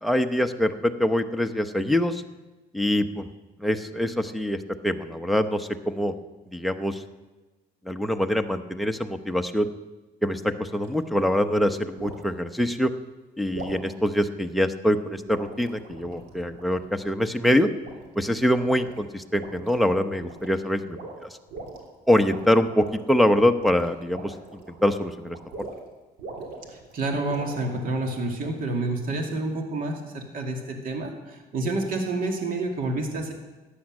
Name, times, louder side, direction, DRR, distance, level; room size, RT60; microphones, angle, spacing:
voice 1, 0.0-2.2 2.7-3.3 3.6-4.6 4.8-6.1 6.5-7.0 7.9-9.7 10.2-12.9 13.4-17.7 18.2-21.0 22.1-24.3 24.8-25.4, equal, ahead, 5 dB, 0.8 m, -24 dB
sound 1, 10.8-11.0 12.0-12.3 13.5-13.9 15.2-17.1 17.8-18.3 18.6-19.0 19.3-19.8 20.1-20.6 20.9-21.8 22.2-23.1 23.5-25.9 26.2-27.7, right 3 dB, 80° right, 3.1 m, -41 dB
voice 2, 26.7-33.3, right 2 dB, 55° right, 2 dB, 2.5 m, -29 dB
14.5 x 9.8 x 6.5 m, 1.2 s
cardioid pair, 110°, 17 cm